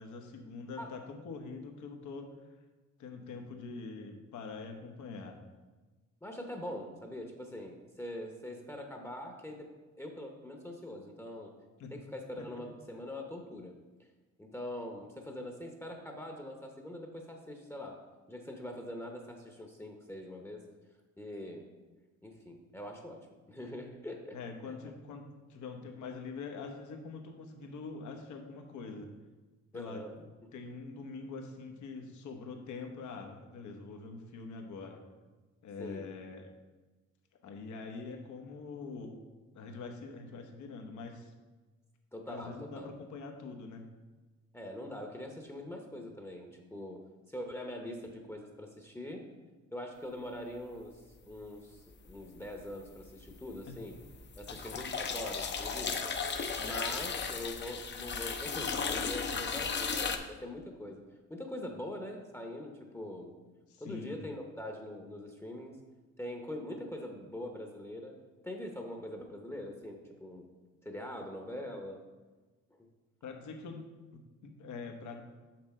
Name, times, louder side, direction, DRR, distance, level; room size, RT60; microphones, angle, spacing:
voice 1, 0.0-2.3 3.0-5.4 11.8-11.9 12.4-12.5 24.3-29.1 29.7-30.0 30.5-35.0 35.6-36.5 37.4-39.2 39.5-41.3 42.3-43.9 53.6-53.8 54.5-54.8 63.7-64.2 73.2-75.2, left 4 dB, 75° left, 4 dB, 1.1 m, -44 dB
voice 2, 6.2-9.7 10.0-11.5 11.9-13.8 14.4-20.7 21.2-21.7 22.2-24.4 24.7-24.8 29.7-30.5 35.8-36.1 42.1-42.9 44.5-49.3 49.7-54.0 54.4-56.0 56.6-61.0 61.3-63.3 63.8-65.8 66.2-68.2 68.4-70.5 70.8-72.0, left 1 dB, 10° left, 2 dB, 0.9 m, -43 dB
sound 1, 52.0-52.6 53.0-60.2, left 5 dB, 35° left, 0.7 m, -35 dB
6.2 x 6.0 x 4.3 m, 1.2 s
cardioid pair, 90°, 30 cm